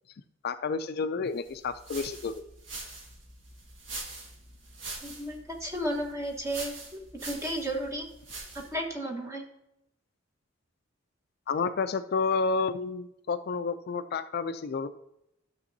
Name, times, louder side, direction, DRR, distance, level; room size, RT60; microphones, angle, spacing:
voice 1, 0.4-2.4 11.5-14.9, left 4 dB, 55° left, 10 dB, 0.4 m, -30 dB
sound 1, 1.4-8.8, right 3 dB, 80° right, 1.7 m, -44 dB
voice 2, 5.0-8.1 8.7-9.4, right 1 dB, 15° right, 1 dB, 1.3 m, -33 dB
12.5 x 6.7 x 2.7 m, 0.84 s
head